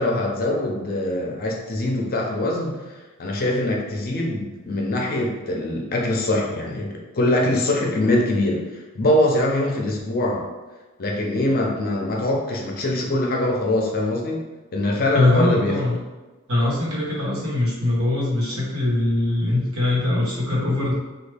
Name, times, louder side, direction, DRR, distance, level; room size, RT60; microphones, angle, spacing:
voice 1, 0.0-2.8 3.2-10.4 11.0-14.4 14.7-15.7, left 1 dB, 45° left, -1 dB, 0.6 m, -23 dB
voice 2, 15.1-16.0 16.5-20.9, left 2 dB, 75° right, -5 dB, 1.2 m, -22 dB
3.3 x 2.3 x 3.3 m, 1.2 s
head